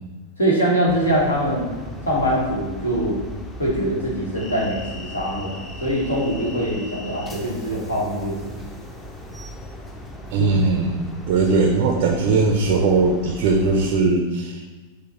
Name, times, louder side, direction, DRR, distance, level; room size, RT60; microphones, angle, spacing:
voice 1, 0.4-1.7 2.1-3.2 3.6-8.9, equal, 75° left, -4 dB, 1.1 m, -23 dB
sound 1, 0.9-14.0, left 1 dB, 10° left, 0.5 m, -37 dB
voice 2, 10.3-14.7, right 3 dB, 45° right, 3 dB, 0.4 m, -19 dB
5.1 x 2.1 x 3.9 m, 1.3 s
figure-of-eight pair, 90°, 0 cm